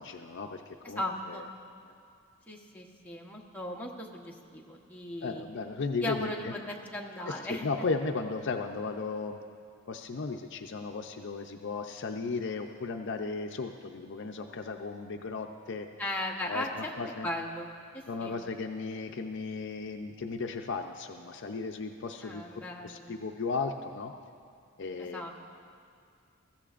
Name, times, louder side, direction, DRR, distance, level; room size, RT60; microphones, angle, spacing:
voice 1, 0.0-1.0 1.3-1.4 5.2-6.5 7.3-9.4 9.9-15.9 16.5-16.6 17.0-17.3 18.1-22.4 22.8-24.1 24.8-25.4, left 4 dB, 55° left, 5 dB, 0.5 m, -35 dB
voice 2, 0.8-1.5 2.5-5.4 6.0-7.9 16.0-16.9 17.2-17.7 17.9-18.3 22.2-23.1 25.0-25.4, left 1 dB, 10° left, -2 dB, 1.0 m, -37 dB
20.5 x 15.0 x 2.5 m, 2.3 s
head